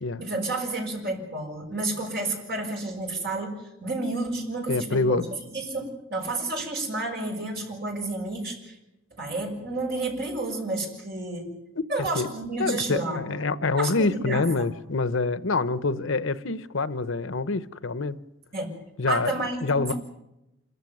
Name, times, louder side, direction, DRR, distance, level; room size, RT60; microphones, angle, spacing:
voice 1, 0.2-5.2 5.5-8.8 9.2-11.5 11.9-13.2 13.8-14.7 18.5-18.7 19.1-19.9, right 2 dB, 55° right, 6.5 m, -30 dB
voice 2, 4.7-5.3 12.0-12.3 12.6-18.2 19.0-19.3 19.6-19.9, left 3 dB, 75° left, 0.9 m, -26 dB
27.0 x 15.0 x 9.4 m
head